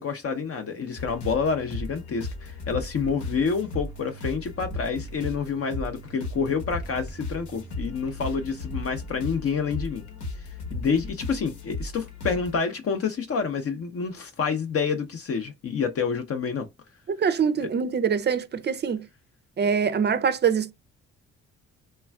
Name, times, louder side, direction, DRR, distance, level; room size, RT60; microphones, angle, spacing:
voice 1, 0.0-10.0 10.7-16.7 17.6-17.7, left 5 dB, 50° left, 0.6 m, -28 dB
sound 1, 1.0-12.6, left 2 dB, 75° left, 1.1 m, -36 dB
voice 2, 17.2-19.0 19.6-20.7, right 6 dB, 35° right, 0.4 m, -24 dB
3.2 x 2.3 x 2.2 m
cardioid pair, 90°, 30 cm